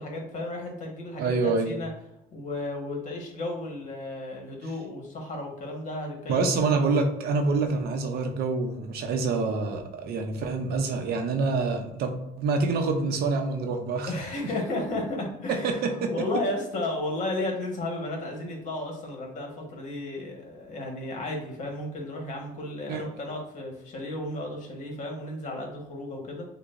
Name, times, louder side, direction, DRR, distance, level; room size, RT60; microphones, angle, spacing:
voice 1, 0.0-1.9 2.3-6.6 14.1-26.5, left 2 dB, 45° left, 0 dB, 1.4 m, -33 dB
voice 2, 1.2-1.7 6.3-14.1 15.5-16.1 22.9-23.0, right 3 dB, 70° right, 5 dB, 0.7 m, -26 dB
6.3 x 2.2 x 2.5 m, 0.85 s
cardioid pair, 110°, 17 cm